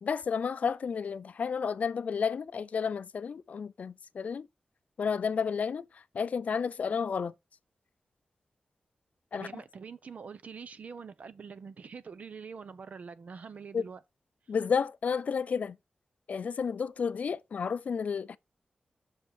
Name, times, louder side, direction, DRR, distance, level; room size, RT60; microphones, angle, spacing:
voice 1, 0.0-4.5 5.0-5.8 6.1-7.3 9.3-9.5 13.7-13.8 14.5-15.8 16.3-18.4, left 6 dB, 70° left, 0.4 m, -31 dB
voice 2, 9.3-14.0, right 5 dB, 65° right, 0.8 m, -45 dB
6.5 x 5.1 x 6.7 m
wide cardioid pair, 120°, 3 cm